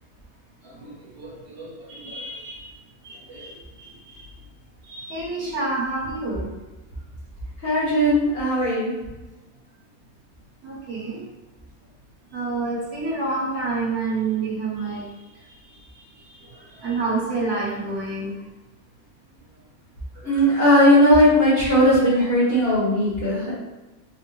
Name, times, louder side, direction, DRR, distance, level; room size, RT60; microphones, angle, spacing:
voice 1, 0.8-2.6 3.0-4.2 4.9-6.5 10.6-11.2 12.3-15.0 16.8-18.3 20.3-20.6, right 3 dB, 50° right, -6 dB, 1.2 m, -29 dB
voice 2, 7.6-8.9 20.2-23.5, equal, 50° left, -8 dB, 0.9 m, -18 dB
3.3 x 2.1 x 3.0 m, 1.1 s
omnidirectional pair, 1.6 m